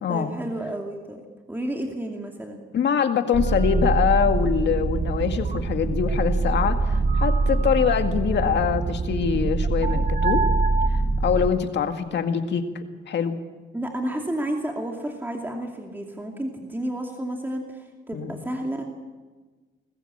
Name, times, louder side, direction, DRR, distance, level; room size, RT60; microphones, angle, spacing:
voice 1, 0.1-1.2 1.5-2.6 13.7-18.8, right 1 dB, 10° right, 1 dB, 2.6 m, -31 dB
voice 2, 2.7-10.4 10.9-13.4 18.1-18.4, left 7 dB, 60° left, 6 dB, 2.0 m, -24 dB
sound 1, 3.3-11.5, right 3 dB, 35° right, 1.1 m, -24 dB
20.5 x 15.0 x 8.8 m, 1.3 s
cardioid pair, 90°, 20 cm